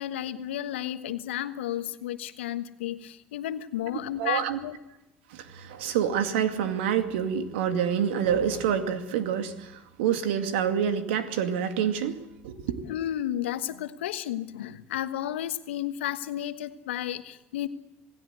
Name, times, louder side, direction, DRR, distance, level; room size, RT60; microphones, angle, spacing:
voice 1, 0.0-4.8 12.8-17.7, left 12 dB, 85° left, 10 dB, 1.3 m, -32 dB
voice 2, 4.2-4.6 5.3-12.8, right 8 dB, 80° right, 7 dB, 2.3 m, -27 dB
27.5 x 18.5 x 8.1 m, 0.96 s
hypercardioid pair, 60°, 6 cm